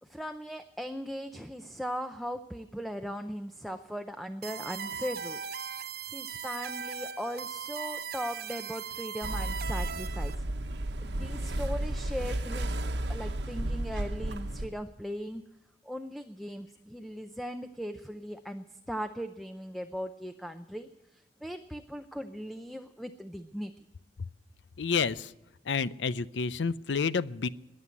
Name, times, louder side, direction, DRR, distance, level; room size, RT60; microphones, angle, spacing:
voice 1, 0.0-5.4 6.1-10.5 11.0-15.4 15.8-20.9 21.4-23.7, equal, ahead, 8 dB, 0.6 m, -38 dB
sound 1, 4.4-10.4, right 7 dB, 60° right, 0.7 m, -39 dB
sound 2, 9.2-14.7, right 1 dB, 75° right, 1.1 m, -33 dB
voice 2, 24.8-25.3 25.7-27.5, left 5 dB, 85° left, 17 dB, 0.6 m, -29 dB
21.0 x 7.7 x 8.3 m, 0.95 s
head